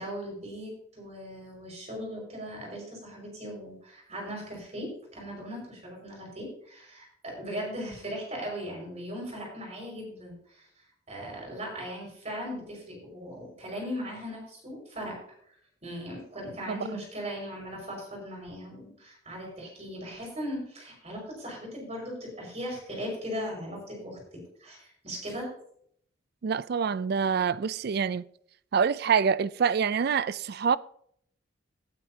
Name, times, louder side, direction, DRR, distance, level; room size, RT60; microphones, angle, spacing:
voice 1, 0.0-10.7 11.1-15.2 15.8-24.2 24.6-25.5, equal, 35° right, 5.5 m, -38 dB
voice 2, 26.4-28.2 28.7-30.8, right 6 dB, 55° right, 0.4 m, -26 dB
18.5 x 9.1 x 2.8 m
head